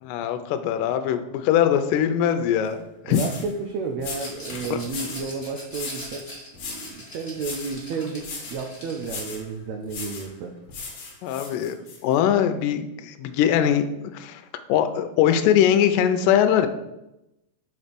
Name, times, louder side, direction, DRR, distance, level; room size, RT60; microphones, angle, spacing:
voice 1, 0.0-3.2 4.7-4.8 11.2-11.8 12.0-13.8 14.1-14.4 14.7-16.7, left 9 dB, 85° left, 8 dB, 2.2 m, -21 dB
sound 1, 2.6-2.7 3.1-3.5 4.0-5.3 5.7-6.1 6.5-7.0 7.4-7.8 8.2-8.6 9.0-9.5 9.9-10.3 10.7-12.0, left 4 dB, 55° left, 1.7 m, -37 dB
voice 2, 3.1-6.3 6.6-10.5, right 4 dB, 90° right, 4 dB, 1.5 m, -32 dB
Rattle, 4.1-9.2, equal, 10° left, 1.3 m, -42 dB
6.6 x 4.2 x 5.1 m, 0.89 s
omnidirectional pair, 3.8 m